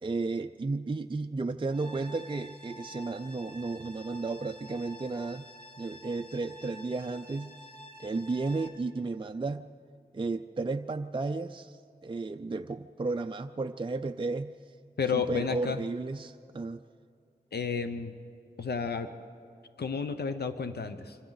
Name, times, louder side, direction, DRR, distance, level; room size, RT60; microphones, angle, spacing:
voice 1, 0.0-5.5 5.8-7.6 8.0-9.7 10.1-14.5 15.1-16.8, right 3 dB, 30° right, 7 dB, 0.5 m, -33 dB
sound 1, 1.7-8.7, left 1 dB, 35° left, 3.0 m, -49 dB
voice 2, 15.0-15.8 17.5-18.1 18.6-19.1 19.8-21.2, left 5 dB, 90° left, 8 dB, 0.8 m, -31 dB
25.5 x 25.0 x 4.0 m, 2.3 s
wide cardioid pair, 85°, 16 cm